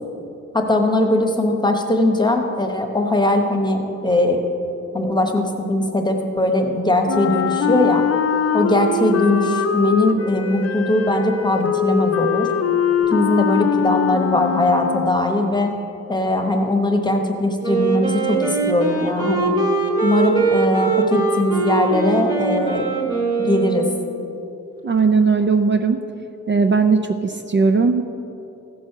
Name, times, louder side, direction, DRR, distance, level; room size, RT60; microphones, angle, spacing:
voice 1, 0.5-4.4 4.9-8.0 8.5-12.5 13.1-15.7 16.1-19.5 20.0-22.9 23.4-23.9, left 1 dB, 15° left, 3 dB, 1.0 m, -20 dB
Wind instrument woodwind instrument, 7.1-15.4, left 7 dB, 55° left, 0.6 m, -22 dB
Wind instrument woodwind instrument 2, 17.6-24.3, right 4 dB, 15° right, 1.4 m, -21 dB
voice 2, 24.8-26.0 26.5-28.0, right 4 dB, 40° right, 6 dB, 0.5 m, -17 dB
15.0 x 6.3 x 5.6 m, 2.9 s
wide cardioid pair, 150°, 30 cm